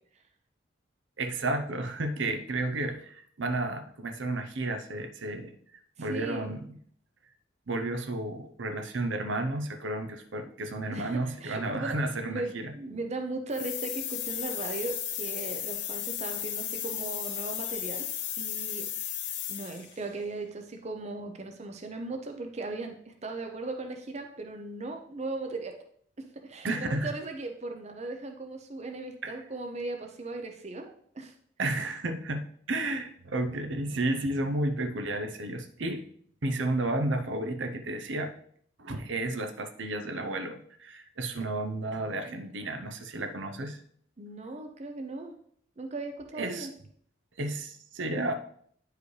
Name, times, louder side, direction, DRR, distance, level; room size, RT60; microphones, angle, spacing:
voice 1, 1.2-5.5 6.0-6.7 7.7-12.7 26.6-27.1 29.2-29.4 31.6-36.0 36.4-38.3 38.8-43.8 46.4-46.7 47.4-48.3, right 2 dB, 70° right, 6 dB, 0.7 m, -32 dB
voice 2, 6.0-6.5 10.9-18.0 18.4-18.9 19.5-25.8 26.2-31.3 41.4-41.5 42.3-42.4 44.2-45.3 45.8-46.7, right 2 dB, 35° right, 4 dB, 0.6 m, -38 dB
sound 1, 13.5-20.0, left 10 dB, 60° left, 0.7 m, -35 dB
9.7 x 4.8 x 3.2 m, 0.62 s
head